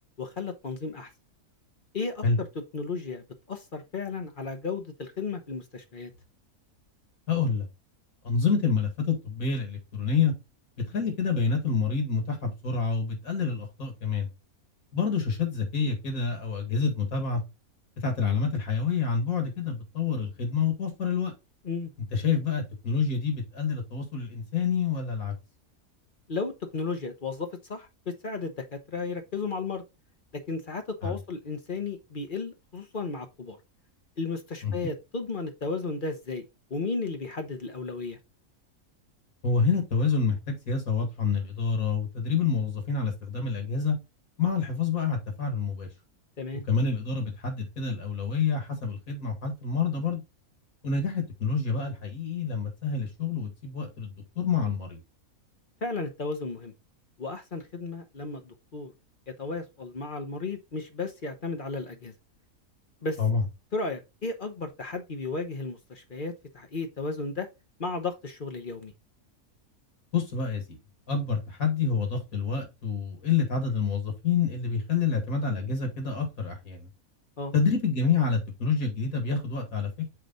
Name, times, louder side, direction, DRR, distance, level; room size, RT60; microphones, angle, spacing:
voice 1, 0.2-1.1 1.9-6.1 21.6-21.9 26.3-29.8 30.3-33.6 34.2-36.4 36.7-38.2 46.4-46.6 55.8-56.7 57.2-58.9 59.4-62.1 63.0-63.2 63.7-67.5 67.8-68.9 77.4-77.5, left 3 dB, 40° left, 1.0 m, -34 dB
voice 2, 7.3-7.7 8.2-10.3 10.9-14.3 14.9-17.4 18.0-21.3 22.1-25.3 31.0-31.1 34.6-34.9 39.4-44.0 44.4-45.9 46.7-50.2 50.8-55.0 63.2-63.4 70.1-70.6 71.1-76.9 77.5-79.9, left 5 dB, 70° left, 2.4 m, -27 dB
6.7 x 4.9 x 3.8 m
omnidirectional pair, 1.6 m